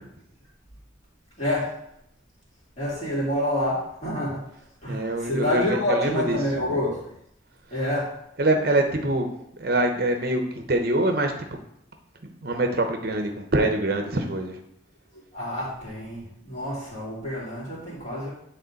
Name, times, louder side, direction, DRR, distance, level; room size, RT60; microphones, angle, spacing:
voice 1, 1.4-1.7 2.8-4.5 4.8-7.0 7.7-8.1 15.3-18.3, left 1 dB, 35° left, -7 dB, 3.0 m, -27 dB
voice 2, 4.9-6.4 8.4-9.3 9.6-11.3 12.4-14.6, right 1 dB, 55° right, 4 dB, 0.7 m, -24 dB
9.2 x 3.7 x 4.0 m, 0.74 s
head